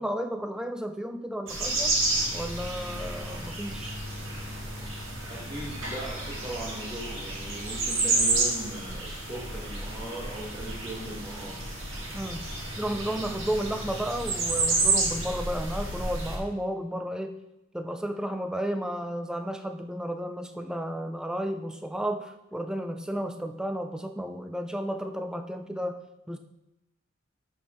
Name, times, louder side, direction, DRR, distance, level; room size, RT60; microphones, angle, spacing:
voice 1, 0.0-1.9 2.3-3.9 12.1-17.4 17.7-26.4, equal, 5° right, 6 dB, 0.5 m, -33 dB
sound 1, 1.5-16.4, right 2 dB, 70° right, 2.3 m, -30 dB
voice 2, 5.3-11.6, right 1 dB, 20° right, -7 dB, 1.5 m, -39 dB
11.0 x 4.5 x 4.3 m, 0.94 s
head